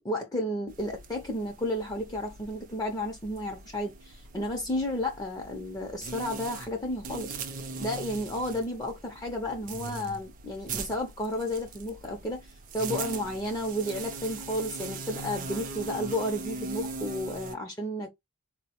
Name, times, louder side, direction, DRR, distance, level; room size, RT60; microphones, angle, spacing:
voice 1, 0.0-18.1, left 1 dB, 15° left, 0.5 m, -32 dB
sound 1, 0.7-17.5, right 4 dB, 40° right, 0.4 m, -40 dB
4.2 x 2.0 x 2.8 m
head